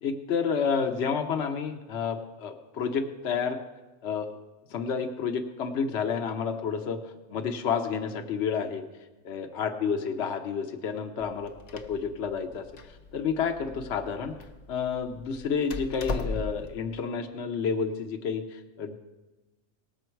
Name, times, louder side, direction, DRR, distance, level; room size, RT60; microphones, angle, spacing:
voice 1, 0.0-3.6 4.0-4.3 4.7-7.0 7.3-8.8 9.2-14.3 14.7-19.0, left 6 dB, 60° left, 5 dB, 1.0 m, -30 dB
Door, 11.2-16.8, left 3 dB, 40° left, 0.6 m, -38 dB
18.5 x 7.0 x 4.5 m, 1.1 s
omnidirectional pair, 1.4 m